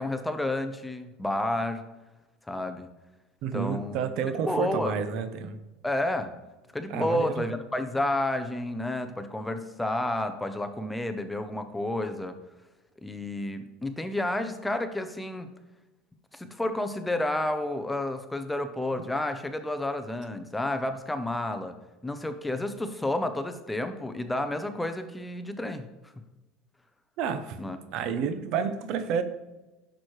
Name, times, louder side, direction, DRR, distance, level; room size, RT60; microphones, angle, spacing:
voice 1, 0.0-1.8 2.5-2.9 3.5-4.0 4.4-5.0 5.8-6.3 6.7-12.4 13.0-15.5 16.3-21.8 22.0-25.9 27.6-27.8, left 1 dB, 5° left, 8 dB, 0.6 m, -30 dB
voice 2, 3.4-5.6 6.9-7.5 27.2-27.6 27.9-29.2, right 6 dB, 55° right, 10 dB, 0.8 m, -30 dB
10.0 x 6.3 x 3.2 m, 1.1 s
supercardioid pair, 125°, 0 cm